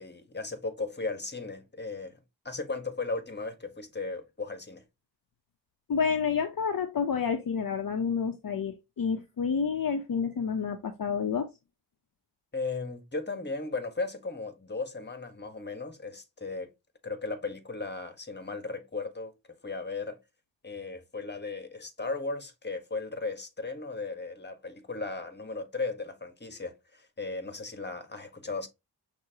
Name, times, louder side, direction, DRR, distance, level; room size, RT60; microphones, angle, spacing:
voice 1, 0.0-4.8 12.5-16.7 17.0-20.2 20.6-28.7, left 3 dB, 25° left, 1.4 m, -36 dB
voice 2, 5.9-11.5, left 6 dB, 50° left, 0.8 m, -29 dB
6.3 x 2.9 x 2.9 m
cardioid pair, 50°, 45 cm